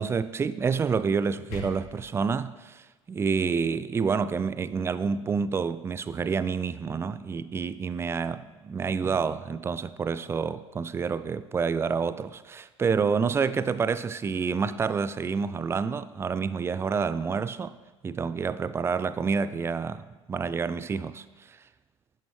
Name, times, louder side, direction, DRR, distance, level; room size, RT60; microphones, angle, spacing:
voice 1, 0.0-17.8 18.0-21.6, right 5 dB, 15° right, 0.4 m, -28 dB
sound 1, 1.1-2.1, left 2 dB, 55° left, 3.2 m, -41 dB
11.5 x 8.8 x 3.3 m
figure-of-eight pair, 70°, 16 cm